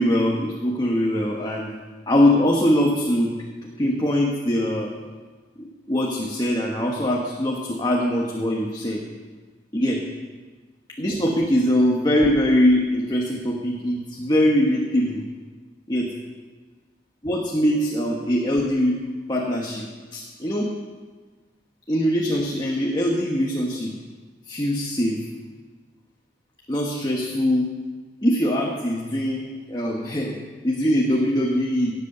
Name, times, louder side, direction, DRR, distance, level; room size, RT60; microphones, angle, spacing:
voice 1, 0.0-1.7 2.1-3.4 3.8-4.9 5.6-9.0 9.7-10.0 11.0-15.2 15.9-16.1 17.2-19.0 19.3-19.8 20.1-20.7 21.9-23.9 24.5-25.2 26.7-27.7 28.2-30.4 30.6-31.9, equal, 25° left, -1 dB, 1.3 m, -22 dB
17.5 x 8.3 x 6.7 m, 1.4 s
head